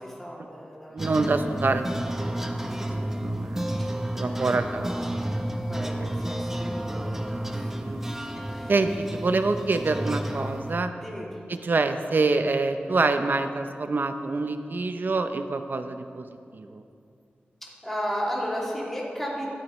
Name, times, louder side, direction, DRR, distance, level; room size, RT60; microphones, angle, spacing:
voice 1, 0.0-1.0 2.7-3.5 3.8-3.9 4.2-5.3 5.7-7.1 7.5-7.8 8.5-8.7 11.0-11.3 17.6-19.5, equal, 5° left, -5 dB, 2.5 m, -35 dB
voice 2, 0.9-2.8 3.1-3.7 4.1-4.9 6.0-6.1 7.0-7.1 7.8-8.0 8.7-10.9 11.5-16.3 16.5-16.8, right 3 dB, 55° right, 8 dB, 0.6 m, -26 dB
sound 1, 1.0-10.7, right 1 dB, 10° right, 0.7 m, -31 dB
13.5 x 13.0 x 3.1 m, 2.4 s
wide cardioid pair, 110°, 4 cm